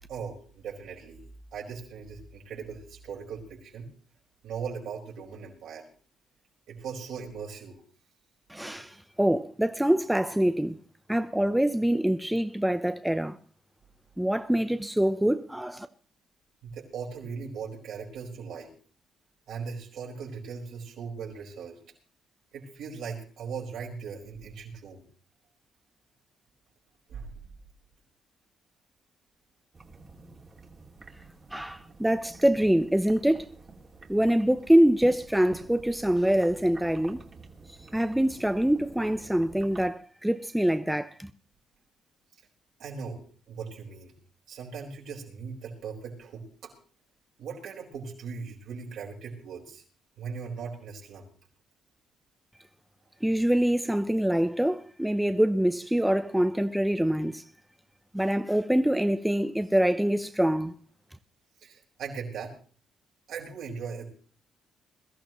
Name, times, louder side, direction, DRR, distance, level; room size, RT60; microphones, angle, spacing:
voice 1, 0.1-1.2 1.5-3.9 4.4-5.8 6.7-7.8 16.6-18.7 19.5-21.8 22.5-25.0 27.1-27.3 42.8-43.2 43.5-44.1 44.5-46.7 47.4-49.8 50.2-51.3 61.6-62.5 63.3-64.1, right 6 dB, 75° right, 5.1 m, -39 dB
voice 2, 8.5-10.8 11.1-13.4 14.2-15.9 31.5-33.5 34.1-37.2 37.9-41.3 53.2-57.4 58.1-60.7, right 1 dB, 5° right, 0.7 m, -25 dB
sound 1, 29.7-39.9, right 3 dB, 35° right, 2.4 m, -49 dB
22.0 x 13.5 x 3.1 m
cardioid pair, 90°, 0 cm